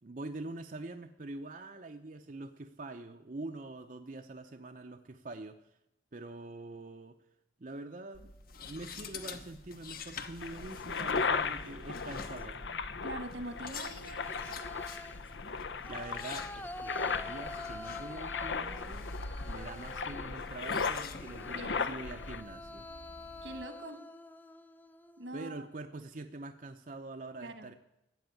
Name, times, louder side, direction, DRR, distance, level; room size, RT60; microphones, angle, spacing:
voice 1, 0.0-5.6 6.1-7.2 7.6-8.3 8.6-12.7 15.9-19.1 19.5-22.9 25.3-27.7, right 2 dB, 45° right, 5 dB, 0.7 m, -45 dB
sound 1, 8.1-23.6, left 4 dB, 50° left, 1.1 m, -48 dB
sound 2, 9.1-9.5 10.4-11.7 12.1-12.7 13.7-20.6 21.1-25.4, left 2 dB, 10° left, 0.5 m, -48 dB
sound 3, 10.4-22.4, left 5 dB, 75° left, 0.7 m, -37 dB
voice 2, 13.0-14.6 21.4-21.9 23.4-24.0 25.2-25.7 27.4-27.7, right 1 dB, 85° right, 8 dB, 1.8 m, -43 dB
14.0 x 8.0 x 9.5 m, 0.86 s
head